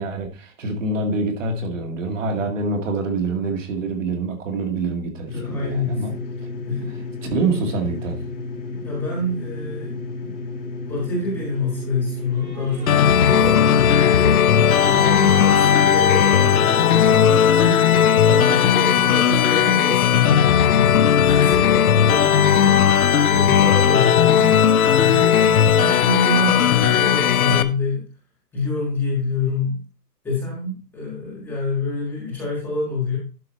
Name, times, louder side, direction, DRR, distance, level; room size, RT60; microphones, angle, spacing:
voice 1, 0.0-6.2 7.2-8.2, right 3 dB, 50° right, 2.0 m, -25 dB
sound 1, 5.3-19.3, left 3 dB, 85° left, 2.6 m, -32 dB
voice 2, 5.3-6.0 6.7-7.0 8.7-10.3 10.9-14.3 14.8-17.8 18.2-28.1 28.5-29.8 30.2-33.2, left 3 dB, 5° left, 1.5 m, -27 dB
sound 2, 12.3-16.2, right 4 dB, 15° right, 1.7 m, -35 dB
sound 3, 12.9-27.6, left 8 dB, 60° left, 0.8 m, -16 dB
11.5 x 4.8 x 4.3 m
hypercardioid pair, 170°, 50 cm